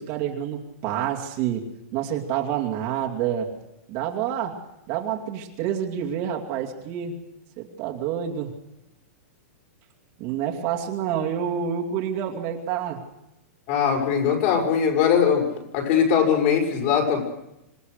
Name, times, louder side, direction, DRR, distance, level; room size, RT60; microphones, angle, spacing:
voice 1, 0.0-3.5 3.9-4.6 4.9-7.2 7.6-8.5 10.2-13.0, right 9 dB, 40° right, 0 dB, 2.5 m, -28 dB
voice 2, 13.7-15.5 15.7-17.2, left 7 dB, 45° left, 1 dB, 6.1 m, -21 dB
26.5 x 18.5 x 6.6 m, 0.87 s
supercardioid pair, 160°, 8 cm